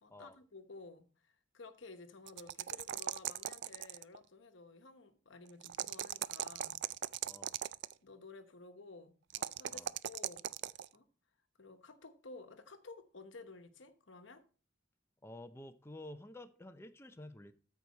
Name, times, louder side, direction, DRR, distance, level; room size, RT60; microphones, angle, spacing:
voice 1, 0.0-6.8 8.0-10.4 10.9-11.1 11.6-14.4, left 3 dB, 65° left, 1.0 m, -54 dB
sound 1, 2.3-4.2 5.6-7.9 9.3-10.9, right 12 dB, 60° right, 0.3 m, -39 dB
voice 2, 7.2-7.6 9.7-9.9 15.2-17.5, left 1 dB, 15° left, 0.5 m, -51 dB
13.0 x 4.8 x 4.2 m
head